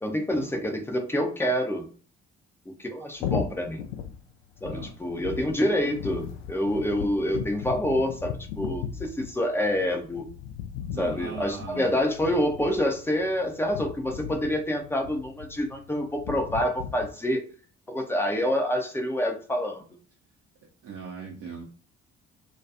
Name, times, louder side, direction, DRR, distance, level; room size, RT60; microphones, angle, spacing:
voice 1, 0.0-1.9 2.8-3.8 4.6-10.3 11.0-17.4 17.9-19.9, equal, 5° left, 3 dB, 0.6 m, -27 dB
sound 1, 3.2-17.1, left 8 dB, 70° left, 0.5 m, -37 dB
voice 2, 10.9-12.0 20.8-21.6, right 5 dB, 45° right, -1 dB, 0.7 m, -39 dB
2.3 x 2.3 x 2.6 m, 0.42 s
figure-of-eight pair, 45°, 35 cm